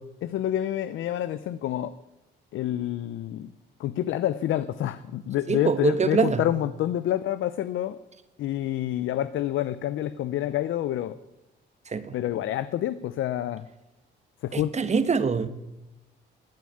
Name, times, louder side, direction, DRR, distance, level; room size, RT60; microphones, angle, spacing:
voice 1, 0.2-2.0 2.5-3.5 3.8-8.0 8.4-11.2 12.1-13.7 14.4-14.7, left 12 dB, 80° left, 14 dB, 0.7 m, -28 dB
voice 2, 5.5-6.4 11.9-12.1 14.5-15.5, right 5 dB, 35° right, 12 dB, 1.4 m, -24 dB
14.5 x 9.4 x 9.9 m, 0.98 s
cardioid pair, 90°, 20 cm